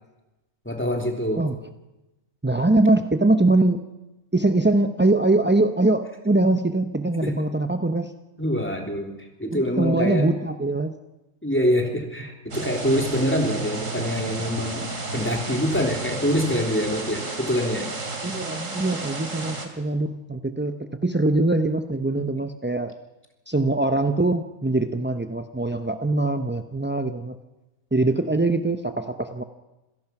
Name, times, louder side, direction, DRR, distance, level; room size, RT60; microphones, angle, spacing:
voice 1, 0.6-1.4 7.2-7.3 8.4-9.1 9.4-10.3 11.4-14.9 15.1-17.9 22.1-22.2, equal, 10° left, 2 dB, 3.2 m, -25 dB
voice 2, 2.4-3.8 4.3-8.1 9.4-11.0 18.2-22.9 23.5-27.4 27.9-29.4, right 2 dB, 15° right, 8 dB, 0.3 m, -22 dB
sound 1, 12.5-19.7, right 2 dB, 60° right, 3.1 m, -32 dB
27.0 x 16.5 x 5.9 m, 1.0 s
omnidirectional pair, 1.5 m